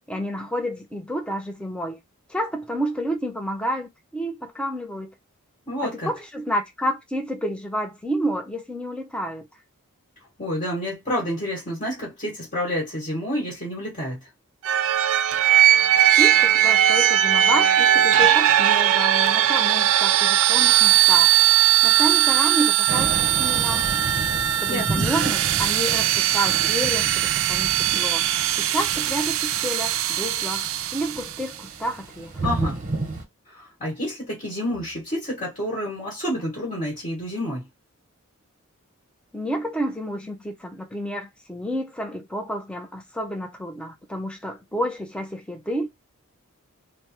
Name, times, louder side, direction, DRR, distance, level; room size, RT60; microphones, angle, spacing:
voice 1, 0.0-2.0 2.3-5.1 5.8-9.5 16.1-21.4 21.8-23.1 23.4-23.9 24.6-28.3 28.6-32.5 39.3-45.9, equal, 5° left, 0.5 m, -30 dB
voice 2, 5.7-6.1 10.4-14.2 24.7-25.1 32.4-32.8 33.5-37.6, equal, 35° left, 1.4 m, -29 dB
sound 1, 14.6-31.4, right 11 dB, 65° right, 0.3 m, -19 dB
Thunder / Rain, 22.9-33.2, right 2 dB, 40° right, 0.7 m, -33 dB
3.3 x 2.0 x 2.8 m
head